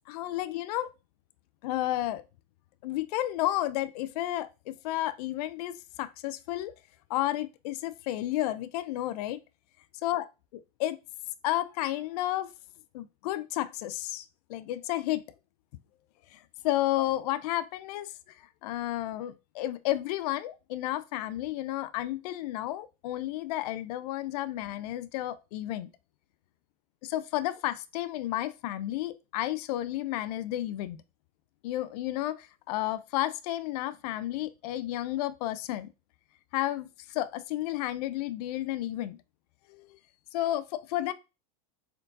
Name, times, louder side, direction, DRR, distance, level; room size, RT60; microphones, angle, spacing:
voice 1, 0.1-0.9 1.6-2.2 2.8-6.7 7.1-9.4 10.0-10.3 10.8-11.0 11.4-12.5 12.9-15.2 16.3-25.9 27.0-31.0 31.6-35.9 36.5-39.2 39.7-40.0 40.3-41.1, left 14 dB, 70° left, 0.5 m, -32 dB
4.2 x 3.9 x 2.6 m
supercardioid pair, 125°, 21 cm